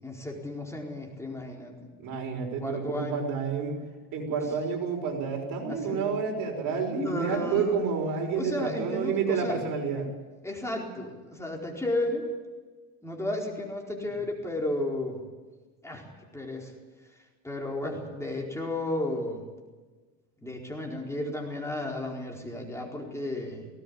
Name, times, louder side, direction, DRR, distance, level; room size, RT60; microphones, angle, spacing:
voice 1, 0.0-1.9 2.6-3.3 5.7-6.2 6.9-7.8 8.4-9.6 10.4-12.3 13.0-15.2 15.8-16.0 16.3-16.7 17.4-19.4 20.4-23.7, left 1 dB, 10° left, 0 dB, 4.4 m, -33 dB
voice 2, 2.0-3.8 4.1-10.1, right 5 dB, 60° right, 2 dB, 5.9 m, -29 dB
19.0 x 18.0 x 8.8 m, 1.3 s
cardioid pair, 115°, 37 cm